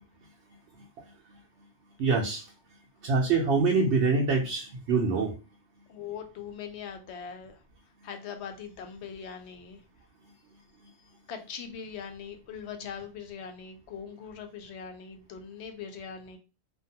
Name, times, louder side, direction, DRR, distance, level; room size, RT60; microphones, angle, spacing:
voice 1, 2.0-2.4 3.0-5.3, right 4 dB, 85° right, -2 dB, 0.9 m, -25 dB
voice 2, 5.9-7.6 8.0-9.8 11.3-16.4, left 7 dB, 80° left, 5 dB, 0.9 m, -41 dB
2.5 x 2.2 x 2.7 m, 0.32 s
omnidirectional pair, 1.1 m